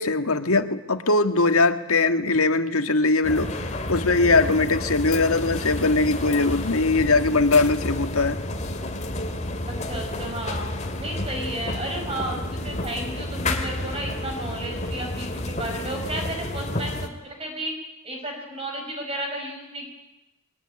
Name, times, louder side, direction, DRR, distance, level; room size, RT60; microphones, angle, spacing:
voice 1, 0.0-3.5 3.9-8.4, left 3 dB, 90° left, 8 dB, 1.8 m, -21 dB
sound 1, 3.2-17.1, left 1 dB, 30° left, 2.4 m, -30 dB
voice 2, 9.6-10.7 11.0-17.7 18.0-19.9, right 1 dB, 25° right, 2 dB, 4.8 m, -33 dB
22.5 x 20.5 x 9.9 m, 0.99 s
head